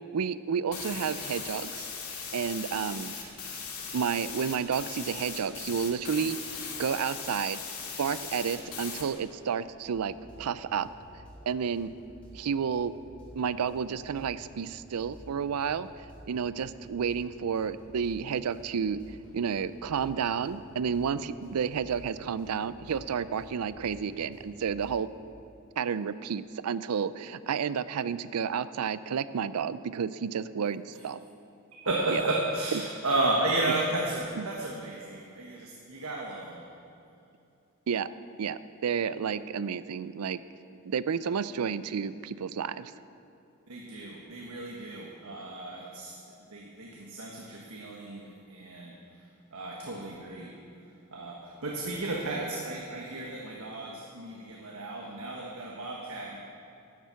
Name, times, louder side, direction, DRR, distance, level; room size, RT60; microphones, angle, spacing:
voice 1, 0.1-1.9 2.3-3.2 3.9-6.4 6.8-7.6 8.0-10.9 11.5-11.9 12.3-12.9 13.3-15.9 16.3-19.0 19.3-25.1 25.8-31.2 32.1-32.2 34.4-34.5 37.9-38.1 38.4-40.4 40.8-42.9, right 6 dB, 85° right, 16 dB, 0.4 m, -31 dB
sound 1, 0.7-9.0, left 5 dB, 85° left, 1.9 m, -39 dB
sound 2, 9.6-25.0, equal, 5° left, 3.3 m, -52 dB
voice 2, 31.8-36.7 43.7-46.1 46.5-56.4, right 2 dB, 70° right, -2 dB, 1.4 m, -33 dB
12.0 x 7.4 x 8.2 m, 2.7 s
head